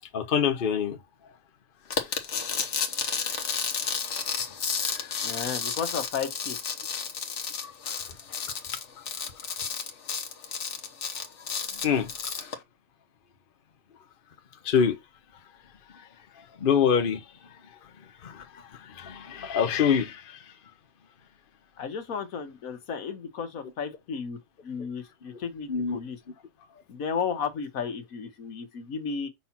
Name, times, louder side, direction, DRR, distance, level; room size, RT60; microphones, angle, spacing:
voice 1, 0.1-1.0 4.9-5.1 7.6-7.7 11.8-12.1 14.6-15.0 16.6-17.2 18.2-18.4 18.8-20.4 25.7-26.0, left 7 dB, 45° left, 1.0 m, -25 dB
sound 1, 1.9-12.5, left 6 dB, 60° left, 1.3 m, -32 dB
voice 2, 5.2-6.6 21.8-24.4 24.6-26.2 26.9-29.3, left 6 dB, 80° left, 1.5 m, -33 dB
5.5 x 4.2 x 5.8 m
omnidirectional pair, 1.4 m